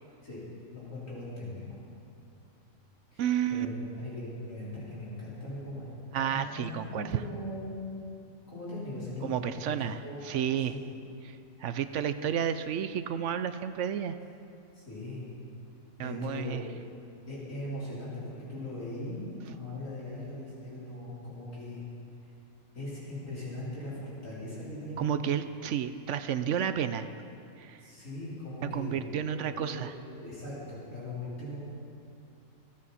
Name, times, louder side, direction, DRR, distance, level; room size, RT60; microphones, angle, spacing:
voice 1, 0.7-1.6 3.1-5.9 6.3-7.8 8.5-9.7 10.0-10.9 14.7-15.2 16.0-16.6 17.3-21.9 22.7-25.1 27.8-29.9 30.2-31.6, left 1 dB, 65° left, -9 dB, 4.7 m, -40 dB
voice 2, 3.2-3.7 6.1-7.2 9.2-10.8 11.6-14.2 16.0-16.6 25.0-27.1 27.6-27.8 28.6-29.9, right 9 dB, 65° right, 11 dB, 0.8 m, -31 dB
27.5 x 9.5 x 4.2 m, 2.6 s
omnidirectional pair, 1.5 m